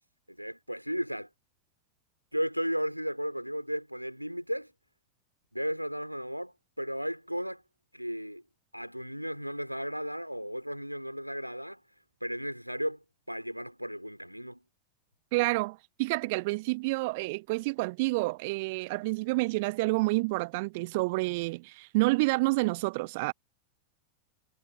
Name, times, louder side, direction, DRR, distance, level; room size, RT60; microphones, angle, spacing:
voice 1, 0.3-1.3 2.3-4.7 5.5-7.6 7.9-8.4 8.7-11.8 12.2-14.6, equal, 90° right, 2.9 m, -35 dB
voice 2, 15.3-23.3, right 24 dB, 50° right, 0.9 m, -29 dB
figure-of-eight pair, 90°, 0 cm